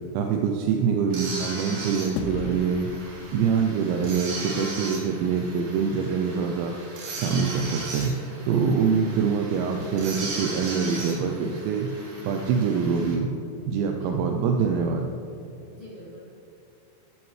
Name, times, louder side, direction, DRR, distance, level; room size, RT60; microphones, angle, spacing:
voice 1, 0.1-2.9 3.3-6.7 7.1-8.1 8.5-11.9 12.2-13.3 13.6-15.1, right 6 dB, 85° right, 3 dB, 2.9 m, -24 dB
sound 1, 1.1-13.1, right 2 dB, 55° right, 2.6 m, -37 dB
sound 2, 2.2-4.8, left 5 dB, 85° left, 2.4 m, -37 dB
voice 2, 3.1-3.5 14.0-14.1 15.7-16.2, left 1 dB, 50° left, -10 dB, 0.7 m, -46 dB
14.5 x 9.2 x 3.2 m, 2.6 s
omnidirectional pair, 5.2 m